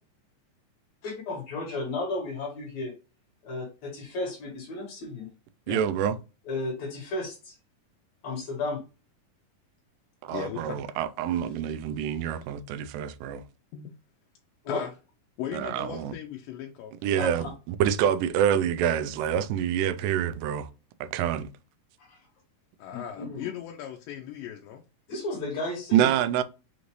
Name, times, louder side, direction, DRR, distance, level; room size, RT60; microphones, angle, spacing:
voice 1, 1.0-2.9 3.4-5.3 5.7-5.8 6.5-7.6 8.2-8.8 14.6-14.8 17.2-17.3 22.1-22.2 22.9-23.5 25.1-26.1, left 2 dB, 60° left, 2.3 m, -33 dB
voice 2, 5.7-6.2 10.3-13.4 15.5-16.1 17.0-20.7 21.0-21.5 25.9-26.4, right 9 dB, 85° right, 2.2 m, -26 dB
voice 3, 10.3-11.0 11.3-11.4 13.7-13.9 14.7-14.9 15.4-17.0 22.8-24.8, left 10 dB, 90° left, 2.3 m, -38 dB
5.9 x 2.6 x 3.1 m
omnidirectional pair, 3.9 m